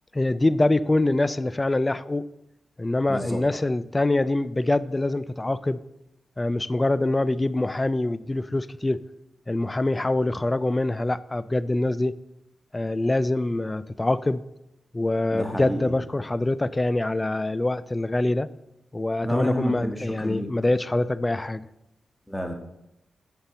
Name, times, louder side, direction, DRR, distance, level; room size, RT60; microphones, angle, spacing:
voice 1, 0.1-2.2 2.8-5.8 6.4-9.0 9.5-12.1 12.7-14.4 14.9-18.5 18.9-21.7, left 2 dB, 25° left, 17 dB, 0.4 m, -24 dB
voice 2, 3.1-3.4 15.3-15.9 19.2-20.5 22.3-22.5, equal, ahead, 3 dB, 1.7 m, -29 dB
7.3 x 5.4 x 6.6 m, 0.88 s
cardioid pair, 55°, 0 cm